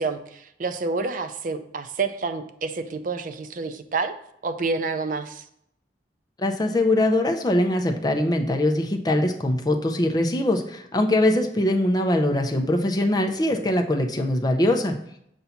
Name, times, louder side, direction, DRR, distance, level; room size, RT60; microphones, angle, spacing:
voice 1, 0.0-4.1 4.4-5.4, right 4 dB, 50° right, 9 dB, 0.4 m, -28 dB
voice 2, 6.4-14.9, left 1 dB, 20° left, 4 dB, 0.6 m, -22 dB
7.0 x 2.7 x 5.7 m, 0.73 s
head